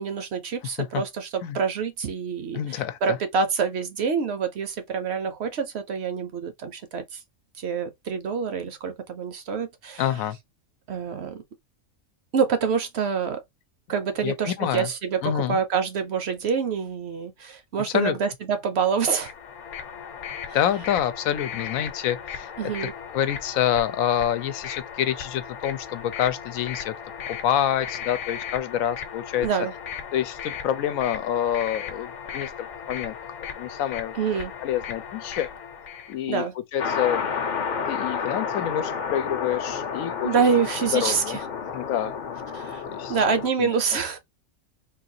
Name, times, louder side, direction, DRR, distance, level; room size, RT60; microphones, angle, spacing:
voice 1, 0.0-7.2 7.6-10.0 10.9-11.4 12.3-13.4 13.9-19.3 22.6-22.9 29.4-29.7 34.1-34.5 36.3-36.5 40.2-41.4 42.5-42.8 43.1-44.2, right 6 dB, 60° right, 0.8 m, -26 dB
voice 2, 2.5-3.2 10.0-10.4 14.2-14.9 15.2-15.6 17.9-18.2 20.5-22.7 23.1-26.9 27.3-29.5 30.1-33.1 33.6-34.1 34.6-35.5 36.1-36.4 36.7-37.2 37.9-40.3 40.9-41.4 41.7-42.1 42.8-43.2 43.6-43.7, left 10 dB, 85° left, 1.0 m, -27 dB
sound 1, 19.1-36.2, left 7 dB, 65° left, 1.0 m, -37 dB
sound 2, 36.8-43.5, left 6 dB, 50° left, 0.6 m, -30 dB
3.8 x 2.4 x 2.7 m
omnidirectional pair, 1.4 m